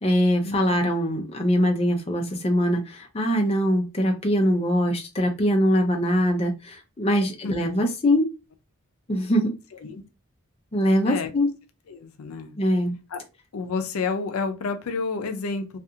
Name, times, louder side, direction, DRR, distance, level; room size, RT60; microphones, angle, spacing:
voice 1, 0.0-8.3 9.1-9.5 10.7-11.5 12.6-12.9, equal, 30° left, 0.5 m, -22 dB
voice 2, 11.9-12.5 13.1-13.2 13.5-15.8, left 4 dB, 85° left, 0.5 m, -29 dB
2.4 x 2.4 x 2.7 m
head